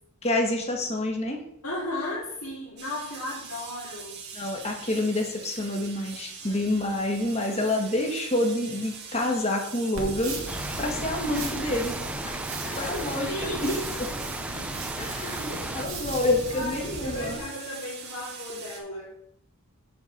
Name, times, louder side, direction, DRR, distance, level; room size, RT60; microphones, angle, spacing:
voice 1, 0.2-1.4 4.3-10.4 10.8-12.4 12.8-13.7 14.6-14.7 15.0-17.4, left 1 dB, 30° left, 2 dB, 1.5 m, -28 dB
voice 2, 1.6-4.2 6.4-6.6 12.6-13.0 13.3-13.8 15.5-15.7 16.5-19.1, left 1 dB, 70° left, -8 dB, 2.4 m, -35 dB
sound 1, 2.8-18.8, right 5 dB, 50° right, 1.5 m, -43 dB
sound 2, 9.9-17.4, right 2 dB, 70° right, 1.8 m, -37 dB
sound 3, 10.5-15.9, right 1 dB, 5° right, 0.4 m, -36 dB
6.3 x 4.6 x 6.6 m, 0.71 s
head